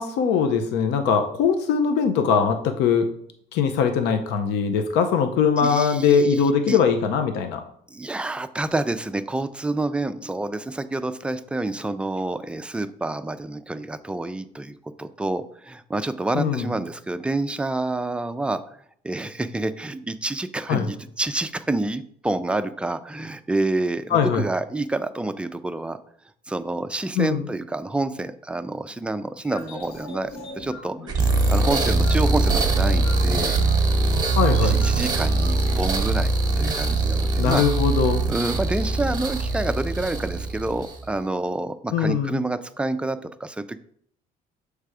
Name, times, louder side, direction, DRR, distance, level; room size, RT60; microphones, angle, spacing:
voice 1, 0.0-3.1 3.5-7.6 16.3-16.7 20.7-20.9 24.1-24.4 27.2-27.4 34.4-34.8 37.4-38.2 41.9-42.4, left 6 dB, 85° left, 7 dB, 0.6 m, -21 dB
voice 2, 5.6-6.8 7.9-18.6 19.0-26.0 26.5-30.9 31.5-33.6 34.6-36.3 36.6-37.6 38.3-43.8, right 2 dB, 5° right, 10 dB, 0.3 m, -28 dB
sound 1, 29.4-36.2, left 2 dB, 70° left, 1.6 m, -40 dB
sound 2, 31.1-41.1, right 3 dB, 25° right, 1.0 m, -22 dB
6.5 x 3.3 x 4.8 m, 0.65 s
cardioid pair, 110°, 17 cm